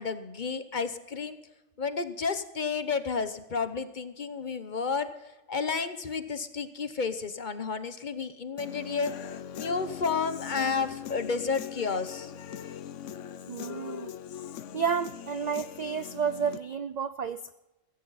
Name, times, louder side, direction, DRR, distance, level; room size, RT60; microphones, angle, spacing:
voice 1, 0.0-1.4 1.8-5.1 5.5-9.1 9.6-12.3, left 5 dB, 40° left, 11 dB, 0.9 m, -31 dB
Human voice / Guitar, 8.6-16.6, left 9 dB, 70° left, 1.0 m, -41 dB
voice 2, 13.5-14.1 14.7-17.5, right 6 dB, 65° right, 13 dB, 0.4 m, -31 dB
15.5 x 15.0 x 4.1 m, 1.0 s
omnidirectional pair, 1.3 m